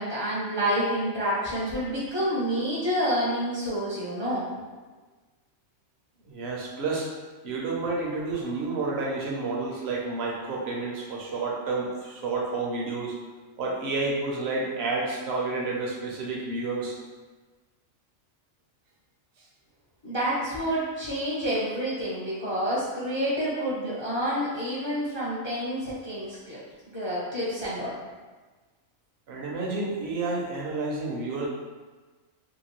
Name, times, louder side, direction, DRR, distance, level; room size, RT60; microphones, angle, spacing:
voice 1, 0.0-4.4 20.0-26.6 26.9-28.0, equal, 35° left, -8 dB, 0.4 m, -28 dB
voice 2, 6.3-7.1 7.4-13.2 13.6-17.0 29.3-31.5, right 3 dB, 60° right, -3 dB, 0.8 m, -30 dB
2.8 x 2.5 x 2.9 m, 1.3 s
omnidirectional pair, 1.4 m